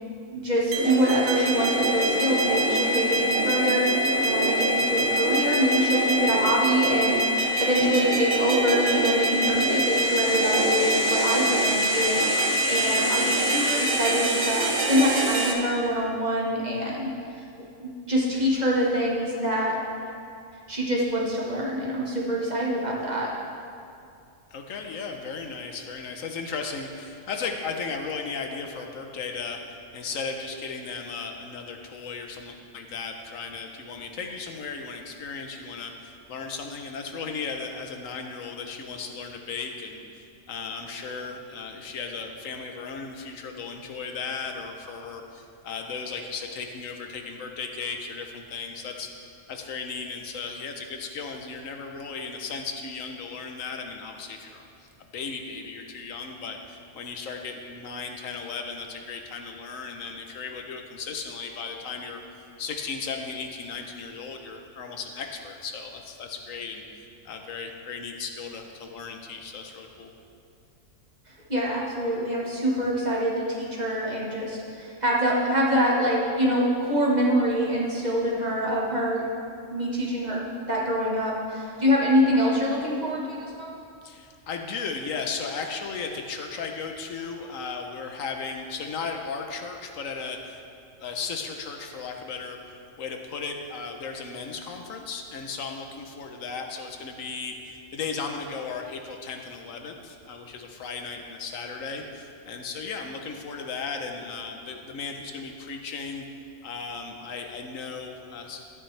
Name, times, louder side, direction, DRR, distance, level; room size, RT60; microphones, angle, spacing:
voice 1, 0.3-17.1 17.8-19.8 20.7-23.3 71.5-79.2 79.7-83.7, equal, 35° right, -4 dB, 1.5 m, -25 dB
sound 1, 0.7-15.5, right 1 dB, 80° right, 1.4 m, -24 dB
voice 2, 24.5-62.2 62.6-66.8 67.2-70.1 84.0-90.6 91.0-106.2 106.6-108.6, left 5 dB, 85° left, 4 dB, 1.3 m, -36 dB
13.0 x 9.2 x 3.3 m, 2.5 s
omnidirectional pair, 1.3 m